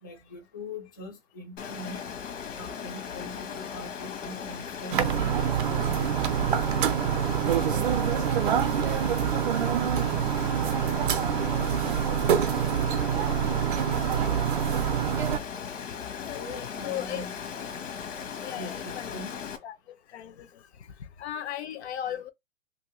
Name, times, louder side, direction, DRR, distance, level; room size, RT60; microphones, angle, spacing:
voice 1, 0.0-2.1 2.5-9.3 9.9-13.4 16.3-17.4 18.6-19.4, left 1 dB, 15° left, 0.3 m, -44 dB
Water, 1.6-19.6, left 7 dB, 80° left, 1.1 m, -38 dB
sound 1, 4.9-15.4, right 9 dB, 45° right, 0.4 m, -26 dB
voice 2, 16.3-17.2 18.4-19.1 19.6-19.8 20.1-20.6 21.2-22.3, left 11 dB, 60° left, 0.7 m, -36 dB
3.0 x 2.6 x 3.0 m
hypercardioid pair, 165°, 37 cm